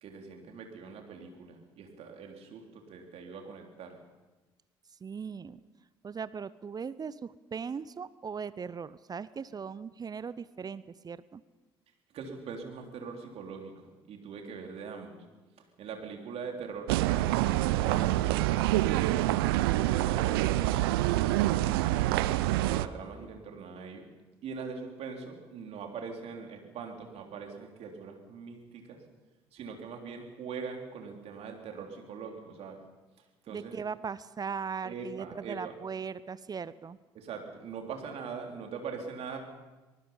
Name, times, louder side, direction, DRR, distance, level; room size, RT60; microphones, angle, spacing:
voice 1, 0.0-4.0 12.1-15.2 15.8-21.2 21.8-24.1 24.4-29.0 29.5-32.8 33.4-33.7 34.8-35.7 37.2-39.4, right 5 dB, 55° right, 2 dB, 3.6 m, -42 dB
voice 2, 5.0-5.6 6.0-11.4 33.5-37.0, right 6 dB, 30° right, 17 dB, 0.8 m, -39 dB
sound 1, 16.9-22.9, right 16 dB, 70° right, 0.6 m, -26 dB
24.5 x 19.5 x 5.7 m, 1.2 s
figure-of-eight pair, 50°, 13 cm